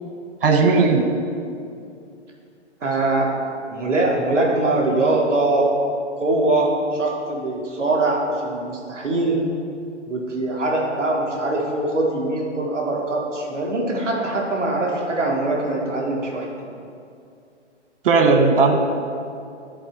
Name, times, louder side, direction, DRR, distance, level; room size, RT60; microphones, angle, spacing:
voice 1, 0.4-1.1 6.6-6.7 18.0-18.8, right 4 dB, 50° right, 5 dB, 1.0 m, -16 dB
voice 2, 2.8-3.3 3.7-5.7 6.2-9.5 10.1-16.5, right 2 dB, 5° right, -11 dB, 0.4 m, -22 dB
10.5 x 4.1 x 4.6 m, 2.5 s
hypercardioid pair, 145°, 36 cm